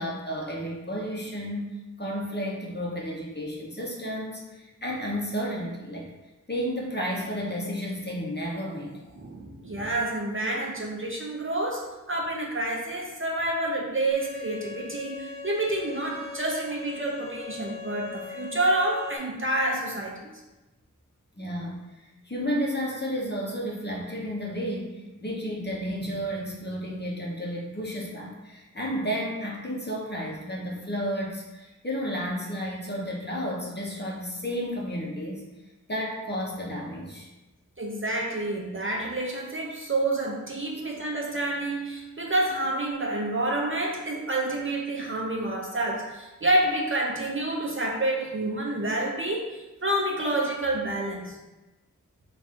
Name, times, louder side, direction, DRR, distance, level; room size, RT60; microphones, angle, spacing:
voice 1, 0.0-1.7 2.0-6.1 6.5-9.0 21.4-35.5 35.9-37.3, equal, 30° left, -3 dB, 0.8 m, -32 dB
voice 2, 9.1-20.3 37.8-51.4, right 1 dB, 40° right, -2 dB, 0.6 m, -28 dB
Bowed string instrument, 14.1-19.2, left 6 dB, 10° left, 1.1 m, -40 dB
4.0 x 2.4 x 3.6 m, 1.0 s
wide cardioid pair, 40°, 32 cm